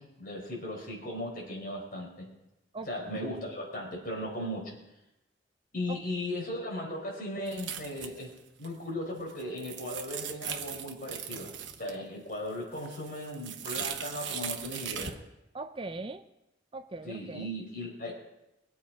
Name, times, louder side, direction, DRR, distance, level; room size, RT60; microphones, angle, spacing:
voice 1, 0.0-2.3 2.9-4.8 5.7-8.3 8.6-11.5 11.8-15.1 17.0-18.1, left 1 dB, 50° left, -1 dB, 4.3 m, -37 dB
voice 2, 2.7-3.2 5.9-6.0 15.5-16.2 16.7-17.5, right 3 dB, 30° right, 10 dB, 0.5 m, -40 dB
sound 1, 7.5-8.4 8.6-8.7 9.2-12.0 12.3-15.1, right 8 dB, 85° right, 1.1 m, -39 dB
22.0 x 8.3 x 4.9 m, 0.93 s
head